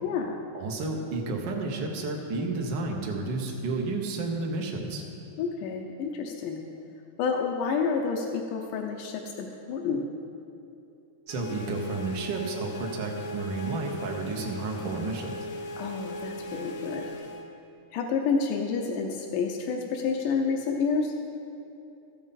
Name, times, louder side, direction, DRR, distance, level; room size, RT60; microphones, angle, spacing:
voice 1, 0.0-0.4 5.4-6.6 7.2-10.1 15.8-17.1 17.9-21.1, left 5 dB, 85° left, 2 dB, 2.3 m, -29 dB
voice 2, 0.5-5.0 11.3-15.5, right 3 dB, 70° right, 1 dB, 1.0 m, -31 dB
sound 1, 11.3-17.4, left 1 dB, 70° left, 1.9 m, -39 dB
13.5 x 9.1 x 4.1 m, 2.8 s
omnidirectional pair, 3.6 m